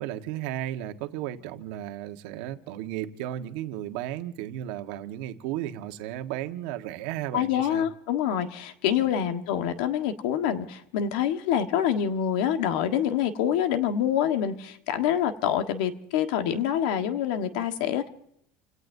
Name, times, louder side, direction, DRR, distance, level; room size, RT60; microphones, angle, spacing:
voice 1, 0.0-7.9 9.0-9.3, right 12 dB, 70° right, 1.4 m, -34 dB
voice 2, 7.3-18.1, left 9 dB, 85° left, 1.4 m, -26 dB
30.0 x 17.5 x 2.7 m
cardioid pair, 170°, 4 cm